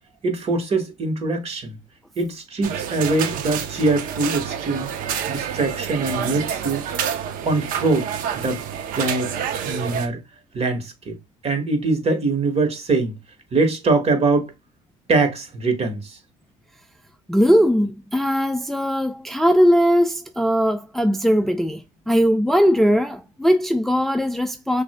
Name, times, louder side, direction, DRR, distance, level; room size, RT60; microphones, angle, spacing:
voice 1, 0.2-1.8 2.2-4.9 5.3-6.8 7.4-8.1 8.4-8.6 9.0-9.3 9.6-10.2 10.5-11.2 11.4-13.1 13.5-14.5 15.1-16.2, right 3 dB, 45° right, 1.5 m, -22 dB
sound 1, 2.6-10.1, right 8 dB, 70° right, 0.8 m, -28 dB
voice 2, 17.3-24.8, equal, ahead, 0.4 m, -19 dB
6.0 x 2.6 x 2.2 m
supercardioid pair, 80°, 15 cm